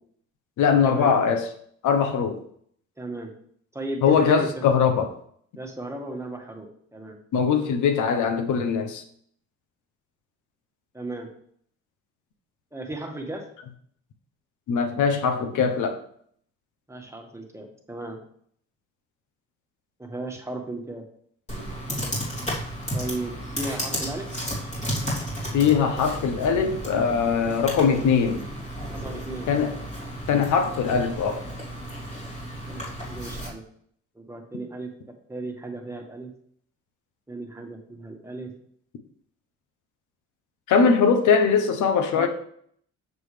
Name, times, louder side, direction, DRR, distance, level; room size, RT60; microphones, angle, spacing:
voice 1, 0.6-1.5 1.8-2.4 4.0-5.1 7.3-9.0 14.7-16.0 25.5-28.4 29.5-29.8 30.3-31.5 40.7-42.3, left 6 dB, 80° left, 1.0 m, -21 dB
voice 2, 3.0-3.3 3.7-4.5 5.6-7.2 10.9-11.3 12.7-13.4 16.9-18.2 20.0-21.0 22.9-24.3 28.9-29.5 32.7-33.6 34.1-34.9 35.3-36.3 37.3-38.5 42.1-42.3, right 2 dB, 10° right, 1.5 m, -35 dB
Computer keyboard, 21.5-33.5, equal, 20° left, 2.9 m, -33 dB
7.2 x 6.8 x 3.3 m
cardioid pair, 90°, 30 cm